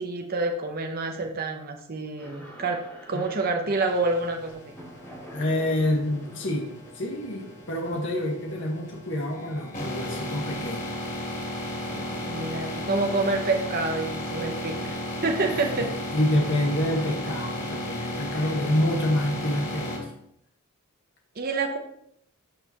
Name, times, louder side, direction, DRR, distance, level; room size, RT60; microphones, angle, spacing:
voice 1, 0.0-4.7 12.3-15.9 21.4-21.8, right 3 dB, 40° right, 3 dB, 0.9 m, -28 dB
sound 1, 2.2-13.1, equal, 5° left, 2.7 m, -48 dB
sound 2, 3.9-20.0, left 1 dB, 40° left, 3.0 m, -35 dB
voice 2, 5.3-10.9 15.5-20.1, left 1 dB, 55° left, -1 dB, 1.6 m, -27 dB
12.5 x 5.6 x 3.0 m, 0.73 s
head